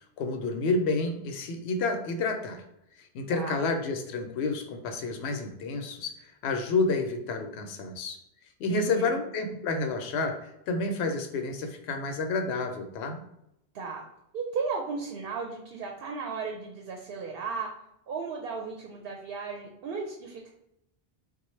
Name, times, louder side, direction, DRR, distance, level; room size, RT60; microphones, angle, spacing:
voice 1, 0.2-2.6 3.0-8.2 8.6-13.2, left 3 dB, 90° left, 5 dB, 0.8 m, -30 dB
voice 2, 8.7-9.2 13.7-14.0 14.3-17.7 18.1-20.5, right 4 dB, 70° right, 2 dB, 0.7 m, -35 dB
3.7 x 2.2 x 3.1 m, 0.80 s
omnidirectional pair, 1.1 m